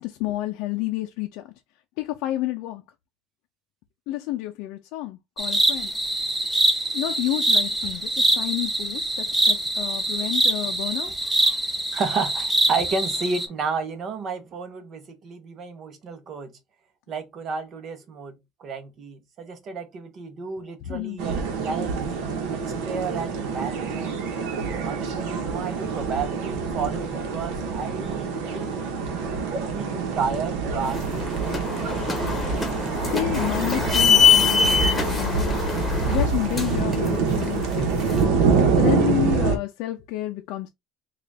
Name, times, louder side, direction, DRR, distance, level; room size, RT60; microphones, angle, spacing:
voice 1, 0.0-1.5 2.0-2.8 4.1-5.9 6.9-11.1 20.8-21.2 23.2-23.3 33.1-38.1 38.7-40.7, left 15 dB, 70° left, 0.5 m, -30 dB
sound 1, 5.4-13.5, right 1 dB, 10° right, 0.7 m, -24 dB
voice 2, 11.9-16.5 17.1-22.1 22.5-24.2 24.8-28.8 29.7-32.1, right 4 dB, 40° right, 0.9 m, -32 dB
sound 2, 21.2-39.6, right 4 dB, 75° right, 1.0 m, -26 dB
sound 3, 30.8-38.2, left 5 dB, 10° left, 1.3 m, -23 dB
3.8 x 2.4 x 3.3 m
cardioid pair, 135°, 0 cm